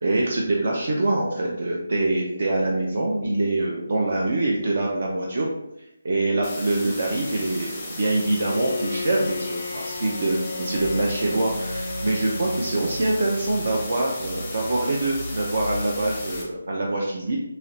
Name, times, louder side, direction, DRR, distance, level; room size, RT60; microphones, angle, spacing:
voice 1, 0.0-5.5 6.0-17.4, right 2 dB, 45° right, -2 dB, 0.5 m, -24 dB
sound 1, 6.4-16.4, left 2 dB, 10° left, 0.6 m, -36 dB
Bowed string instrument, 8.2-13.7, left 2 dB, 60° left, 0.3 m, -34 dB
sound 2, 10.8-16.3, equal, 85° right, 1.5 m, -38 dB
3.2 x 2.8 x 2.7 m, 0.84 s
hypercardioid pair, 175°, 0 cm